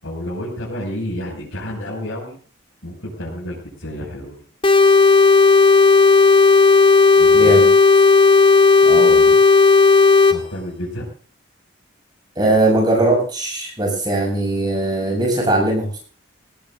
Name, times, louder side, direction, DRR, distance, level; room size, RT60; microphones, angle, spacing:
voice 1, 0.0-2.4 2.8-4.5 7.2-7.5 10.3-11.1, equal, 80° left, -7 dB, 6.6 m, -30 dB
sound 1, 4.6-10.4, left 4 dB, 25° left, 1.1 m, -12 dB
voice 2, 7.3-7.7 8.8-9.3 12.3-16.0, right 2 dB, 20° right, 0 dB, 7.7 m, -20 dB
21.5 x 18.5 x 2.7 m, 0.43 s
head